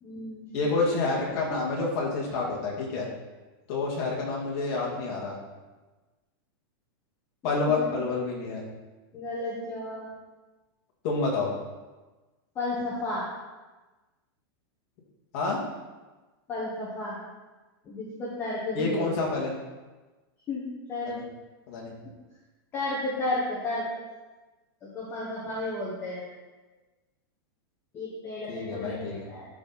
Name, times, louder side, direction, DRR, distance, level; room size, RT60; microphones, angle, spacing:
voice 1, 0.0-0.5 7.4-8.1 9.1-10.1 12.5-13.2 16.5-17.2 17.8-19.4 20.5-21.2 22.7-23.9 24.9-26.2 27.9-29.4, left 2 dB, 20° left, -7 dB, 1.4 m, -33 dB
voice 2, 0.5-3.1 3.7-5.4 7.4-8.6 11.0-11.5 15.3-15.6 18.7-19.5 21.1-21.2 21.7-21.9 28.5-29.3, left 3 dB, 40° left, -4 dB, 2.3 m, -28 dB
12.0 x 4.4 x 4.2 m, 1.2 s
supercardioid pair, 170°, 13 cm